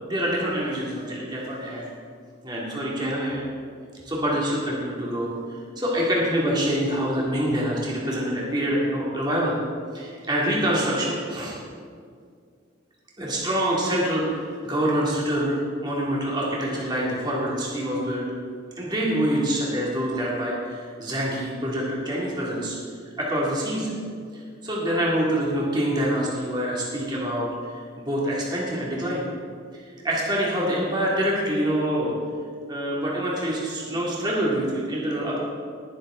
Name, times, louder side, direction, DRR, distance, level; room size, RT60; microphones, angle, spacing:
voice 1, 0.0-1.9 2.4-3.4 4.0-9.6 9.9-11.6 13.2-18.2 18.8-22.8 23.2-23.9 24.3-29.2 29.7-32.1 32.7-35.4, equal, 20° right, -5 dB, 2.4 m, -26 dB
20.5 x 7.3 x 3.9 m, 2.1 s
head